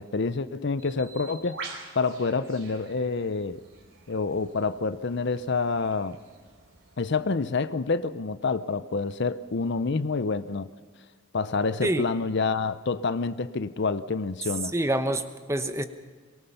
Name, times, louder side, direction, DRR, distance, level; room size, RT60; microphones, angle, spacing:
voice 1, 0.0-1.6 2.0-3.6 4.1-6.2 7.0-10.7 11.3-14.7, left 4 dB, 50° left, 0.6 m, -27 dB
Bird, 0.8-7.2, right 3 dB, 60° right, 4.2 m, -46 dB
voice 2, 14.7-15.8, right 1 dB, 15° right, 1.0 m, -26 dB
23.5 x 22.0 x 5.8 m
head